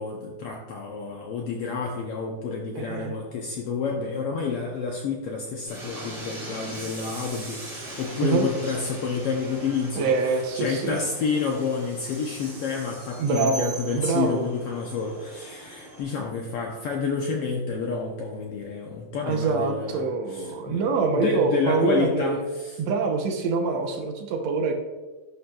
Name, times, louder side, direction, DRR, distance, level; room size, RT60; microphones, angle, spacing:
voice 1, 0.0-20.0 20.3-20.8 21.1-22.8, left 5 dB, 75° left, 1 dB, 1.4 m, -29 dB
voice 2, 2.8-3.1 8.2-8.5 10.0-11.0 13.2-13.7 13.9-14.4 19.2-22.4 22.8-24.7, right 4 dB, 75° right, 3 dB, 1.9 m, -25 dB
Train, 5.7-16.0, right 1 dB, 40° right, 3.1 m, -40 dB
11.5 x 5.6 x 2.3 m, 1.3 s
omnidirectional pair, 3.3 m